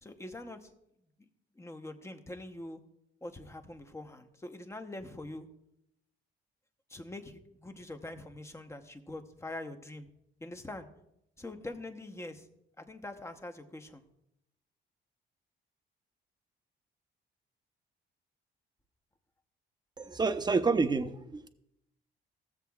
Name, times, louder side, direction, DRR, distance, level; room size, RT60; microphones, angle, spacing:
voice 1, 0.0-0.7 1.5-2.8 3.2-5.5 6.9-10.1 10.4-10.9 11.4-12.5 12.8-14.0 20.1-20.2, left 2 dB, 15° left, 7 dB, 0.9 m, -44 dB
voice 2, 20.0-21.4, right 4 dB, 20° right, 9 dB, 0.7 m, -28 dB
15.5 x 7.3 x 2.3 m, 0.82 s
cardioid pair, 90°, 20 cm